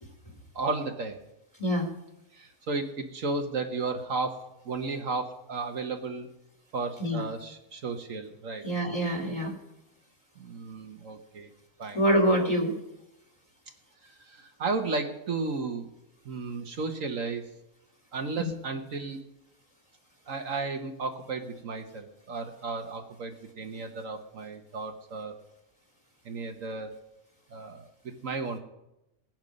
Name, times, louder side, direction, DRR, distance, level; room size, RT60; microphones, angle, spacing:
voice 1, 0.5-1.2 2.3-6.3 6.7-8.7 10.4-11.5 11.8-12.0 14.0-15.9 16.2-17.4 18.1-19.2 20.3-25.4 26.2-26.9 27.5-27.9 28.2-28.6, right 3 dB, 60° right, 5 dB, 1.5 m, -34 dB
voice 2, 8.6-9.5 11.9-12.7 18.4-18.5, equal, 25° left, 3 dB, 2.5 m, -25 dB
17.5 x 10.5 x 5.3 m, 0.89 s
omnidirectional pair, 1.6 m